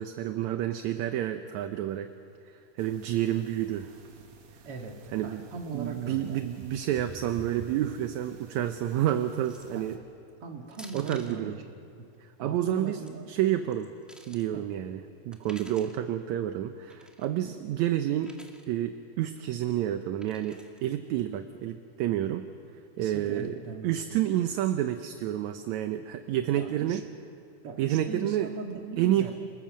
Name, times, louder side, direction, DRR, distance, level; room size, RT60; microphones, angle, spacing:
voice 1, 0.0-2.1 2.8-3.9 5.1-5.5 5.7-10.0 10.9-11.6 12.4-13.0 13.3-13.9 14.3-15.0 15.3-18.4 18.7-22.5 23.0-23.6 23.8-27.0 27.8-28.5 29.0-29.3, right 12 dB, 75° right, 8 dB, 2.0 m, -29 dB
sound 1, 2.8-10.0, right 3 dB, 90° right, 3.6 m, -50 dB
voice 2, 5.2-6.4 9.7-9.8 10.4-11.6 12.4-13.3 14.5-14.6 23.0-24.0 26.5-27.0 27.6-29.3, right 4 dB, 50° right, 2 dB, 2.6 m, -39 dB
sound 2, 9.4-9.8 10.7-11.4 12.7-13.1 13.7-14.5 15.3-16.0 16.9-17.3 18.2-18.7 20.2-20.8, equal, ahead, 1.2 m, -51 dB
29.0 x 20.5 x 7.6 m, 2.4 s
omnidirectional pair, 3.6 m